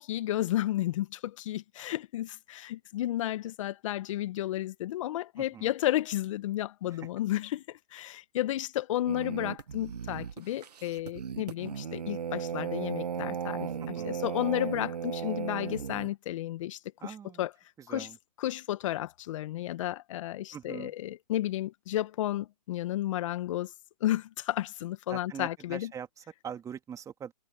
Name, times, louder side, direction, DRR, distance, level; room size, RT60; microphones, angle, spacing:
voice 1, 0.0-13.7 14.0-17.5 17.9-18.1 18.4-23.7 24.0-25.9, left 14 dB, 50° left, 1.6 m, -32 dB
voice 2, 5.4-5.7 6.9-7.1 13.8-14.2 17.0-17.5 17.8-18.2 20.5-20.9 25.1-27.3, right 8 dB, 15° right, 2.8 m, -43 dB
sound 1, 9.1-16.1, right 7 dB, 80° right, 1.5 m, -36 dB
hypercardioid pair, 130°, 20 cm